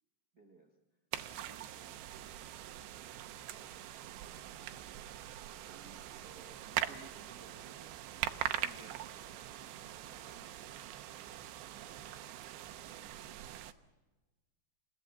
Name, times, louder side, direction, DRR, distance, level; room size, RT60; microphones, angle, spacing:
voice 1, 0.3-0.8 1.3-2.3 5.5-7.9 8.3-12.2 12.4-13.4, right 3 dB, 65° right, 2 dB, 0.9 m, -61 dB
sound 1, 1.1-13.7, right 12 dB, 85° right, 3.1 m, -42 dB
29.0 x 16.5 x 7.3 m, 1.2 s
omnidirectional pair, 5.0 m